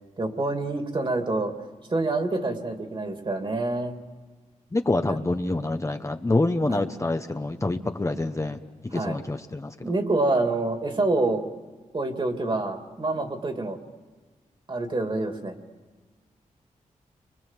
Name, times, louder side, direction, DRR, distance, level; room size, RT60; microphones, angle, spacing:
voice 1, 0.2-1.5 1.9-4.0 5.0-5.2 6.7-6.8 8.9-9.2 9.8-11.4 11.9-13.8 14.7-15.6, right 2 dB, 35° right, 5 dB, 2.7 m, -27 dB
voice 2, 4.7-8.6 8.8-9.7 13.2-13.3, left 2 dB, 20° left, 6 dB, 1.0 m, -26 dB
30.0 x 24.5 x 7.4 m, 1.4 s
cardioid pair, 80°, 13 cm